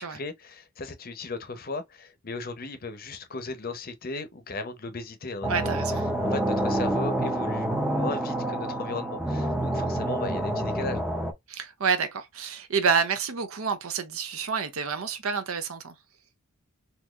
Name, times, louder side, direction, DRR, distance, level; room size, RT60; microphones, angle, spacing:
voice 1, 0.0-5.7 6.3-11.1, left 3 dB, 40° left, 0.7 m, -36 dB
sound 1, 5.4-11.3, right 1 dB, 5° right, 0.5 m, -27 dB
voice 2, 5.5-6.1 11.5-15.9, right 5 dB, 70° right, 0.6 m, -28 dB
3.8 x 2.8 x 2.3 m
head